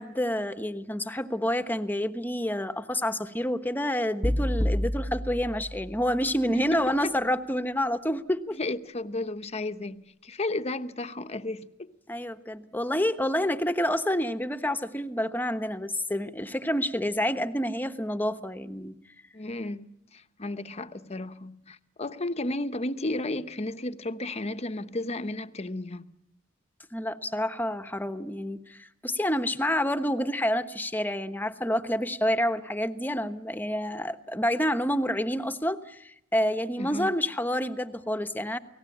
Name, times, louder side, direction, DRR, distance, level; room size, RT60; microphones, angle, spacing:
voice 1, 0.0-8.6 12.1-19.0 26.9-38.6, equal, 10° left, 1.1 m, -28 dB
sound 1, 4.2-6.5, equal, 15° right, 1.1 m, -29 dB
voice 2, 6.5-7.1 8.6-11.9 19.3-26.1 36.8-37.1, left 2 dB, 35° left, 0.9 m, -33 dB
29.0 x 19.0 x 8.6 m
head